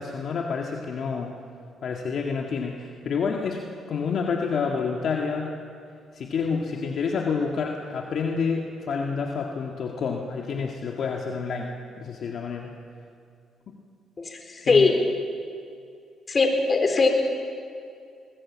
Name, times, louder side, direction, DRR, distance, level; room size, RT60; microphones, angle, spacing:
voice 1, 0.0-1.4 1.8-5.5 6.1-12.8 13.7-13.8 14.6-14.9, left 5 dB, 60° left, 1 dB, 2.0 m, -29 dB
voice 2, 14.2-15.0 16.3-17.1, left 4 dB, 35° left, 4 dB, 4.0 m, -21 dB
23.5 x 20.0 x 7.5 m, 2.4 s
cardioid pair, 90°, 0 cm